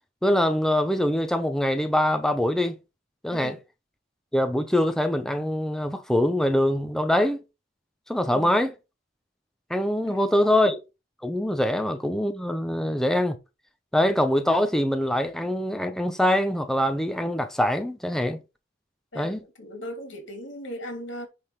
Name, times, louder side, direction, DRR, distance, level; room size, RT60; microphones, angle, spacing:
voice 1, 0.2-2.8 3.2-3.6 4.3-7.4 8.1-8.7 9.7-10.8 11.2-13.4 13.9-18.4 19.1-19.4, left 1 dB, 5° left, 0.8 m, -23 dB
voice 2, 19.1-21.3, equal, 80° left, 2.8 m, -38 dB
9.9 x 3.7 x 4.7 m
head